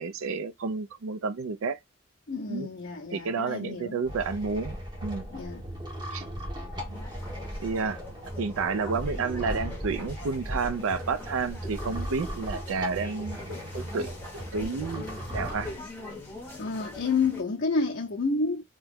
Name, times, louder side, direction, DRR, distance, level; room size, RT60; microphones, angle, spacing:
voice 1, 0.0-1.8 2.5-2.7 3.1-5.3 6.1-6.2 6.9-7.0 7.6-8.0 8.4-14.2 14.5-15.7, right 4 dB, 90° right, 0.4 m, -31 dB
voice 2, 2.3-4.0 5.3-5.6 16.6-18.6, left 4 dB, 55° left, 0.6 m, -29 dB
sound 1, 4.0-15.6, equal, 20° right, 0.9 m, -37 dB
sound 2, 6.9-17.4, left 1 dB, 10° left, 0.7 m, -42 dB
2.9 x 2.3 x 3.3 m
head